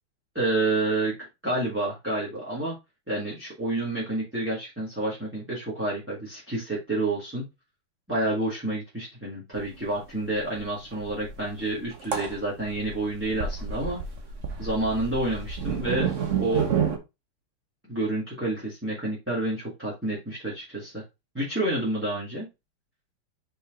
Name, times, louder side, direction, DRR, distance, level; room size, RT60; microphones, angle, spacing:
voice 1, 0.3-1.2 1.4-2.7 3.1-7.4 8.1-14.0 14.6-16.7 17.8-21.0 21.3-22.5, right 2 dB, 5° right, -7 dB, 2.1 m, -29 dB
sound 1, 9.5-9.7 9.9-10.0 10.3-17.0, right 7 dB, 40° right, 1.2 m, -30 dB
5.4 x 4.7 x 3.8 m, 0.24 s
omnidirectional pair, 2.4 m